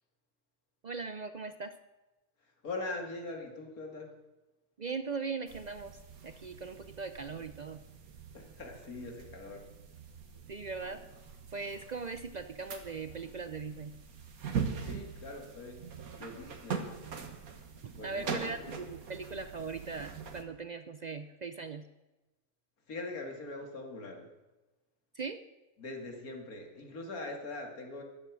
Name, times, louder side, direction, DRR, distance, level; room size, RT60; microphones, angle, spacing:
voice 1, 0.8-1.8 4.8-7.8 10.5-11.0 11.5-13.9 18.0-21.8 25.1-25.4, right 4 dB, 60° right, 10 dB, 0.4 m, -39 dB
voice 2, 2.6-4.1 8.3-9.7 14.8-15.8 16.2-17.0 18.0-18.7 22.9-24.3 25.8-28.0, left 2 dB, 80° left, 3 dB, 2.7 m, -42 dB
sound 1, 5.5-20.4, right 6 dB, 80° right, 1.9 m, -42 dB
14.5 x 11.5 x 6.2 m, 1.1 s
omnidirectional pair, 1.5 m